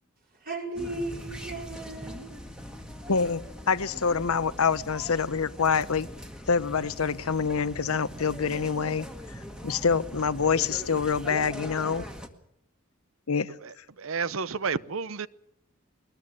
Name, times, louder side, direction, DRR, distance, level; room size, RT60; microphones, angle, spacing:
voice 1, 0.3-2.4, right 2 dB, 45° right, 5.0 m, -36 dB
sound 1, 0.8-12.3, equal, 5° right, 1.8 m, -41 dB
voice 2, 3.1-3.4 3.7-6.1 6.5-9.1 9.6-12.0 13.3-13.5, left 5 dB, 90° left, 0.9 m, -26 dB
voice 3, 13.6-15.3, right 5 dB, 75° right, 0.8 m, -31 dB
22.0 x 20.5 x 7.6 m
head